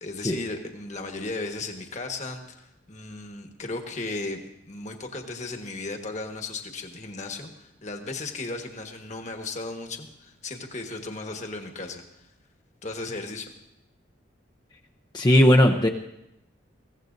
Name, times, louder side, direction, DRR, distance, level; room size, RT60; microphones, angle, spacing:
voice 1, 0.0-12.0 12.8-13.5, left 3 dB, 40° left, 4 dB, 1.4 m, -35 dB
voice 2, 15.1-15.9, left 1 dB, 25° left, 1 dB, 0.7 m, -17 dB
22.0 x 16.5 x 2.6 m, 0.86 s
head